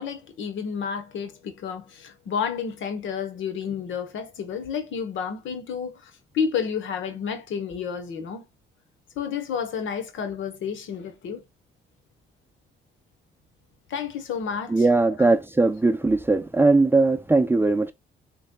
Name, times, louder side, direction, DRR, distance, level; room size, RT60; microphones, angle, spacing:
voice 1, 0.0-8.4 9.1-11.4 13.9-14.9 15.2-15.3, left 6 dB, 75° left, 1.3 m, -31 dB
voice 2, 14.7-17.9, right 3 dB, 10° right, 0.5 m, -20 dB
6.3 x 3.4 x 2.3 m
cardioid pair, 90°, 20 cm